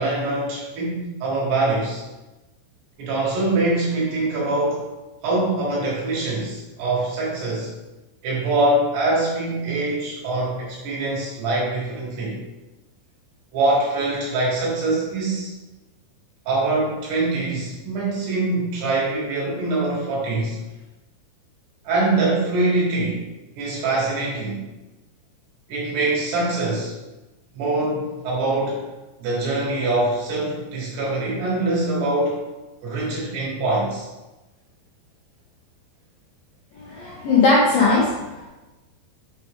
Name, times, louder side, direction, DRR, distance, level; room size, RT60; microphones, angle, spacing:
voice 1, 0.0-2.0 3.0-4.9 5.2-7.7 8.2-12.4 13.5-15.5 16.5-20.6 21.9-23.2 23.6-24.6 25.7-26.9 27.6-28.8 29.2-32.4 32.8-34.1, right 2 dB, 65° right, -5 dB, 3.6 m, -23 dB
voice 2, 36.7-38.5, left 3 dB, 75° left, -6 dB, 2.1 m, -19 dB
7.6 x 4.7 x 3.6 m, 1.1 s
omnidirectional pair, 5.4 m